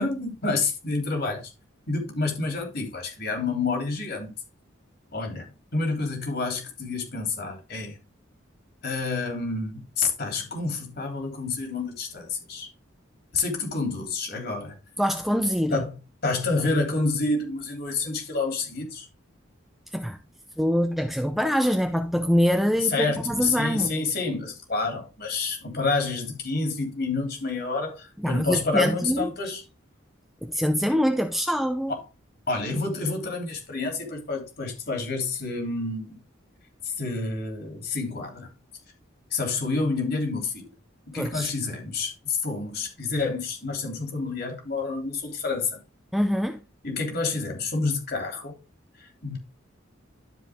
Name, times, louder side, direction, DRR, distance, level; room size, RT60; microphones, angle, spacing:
voice 1, 0.0-1.5 1.9-4.3 5.1-8.0 8.8-12.7 13.3-14.7 15.7-15.9 16.2-19.1 22.8-29.6 31.9-32.1 32.5-36.2 36.8-38.5 39.3-40.7 41.1-45.8 46.8-48.6 49.0-49.4, left 3 dB, 55° left, 3.3 m, -28 dB
voice 2, 15.0-15.8 19.9-20.2 20.6-23.9 28.2-29.3 30.4-31.9 41.1-41.5 46.1-46.6, equal, ahead, 0.6 m, -24 dB
12.0 x 5.1 x 3.6 m
head